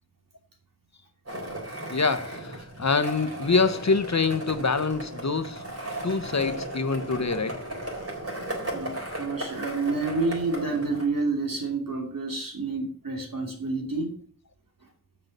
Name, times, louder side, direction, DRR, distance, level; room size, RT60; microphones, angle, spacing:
Skateboard, 1.3-11.1, right 1 dB, 50° right, 3.8 m, -36 dB
voice 1, 1.9-5.6 6.0-7.7, left 4 dB, 55° left, 0.9 m, -25 dB
voice 2, 8.7-14.1, right 3 dB, 85° right, 3.0 m, -29 dB
7.6 x 6.6 x 6.6 m
wide cardioid pair, 40°, 33 cm